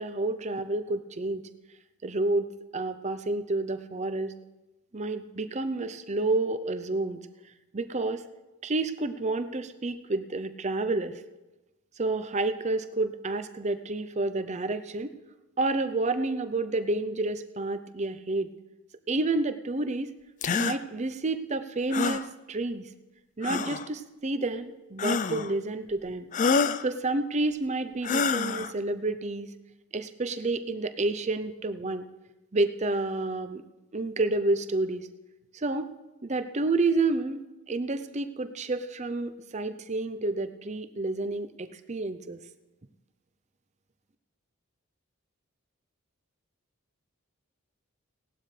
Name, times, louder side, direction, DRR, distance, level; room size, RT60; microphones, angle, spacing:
voice 1, 0.0-1.4 2.0-2.5 2.7-4.3 4.9-7.3 7.7-8.2 8.6-11.1 12.0-15.1 15.6-18.5 19.1-20.1 20.5-22.9 23.4-26.3 26.8-29.5 29.9-32.1 32.5-33.6 33.9-35.1 35.5-35.9 36.2-37.4 37.7-42.4, right 2 dB, 35° right, 10 dB, 0.6 m, -29 dB
sound 1, 20.4-20.8 21.9-22.3 23.4-23.9 25.0-25.5 26.3-26.8 28.0-28.7, left 5 dB, 35° left, 0.4 m, -27 dB
17.5 x 12.0 x 3.3 m, 1.1 s
head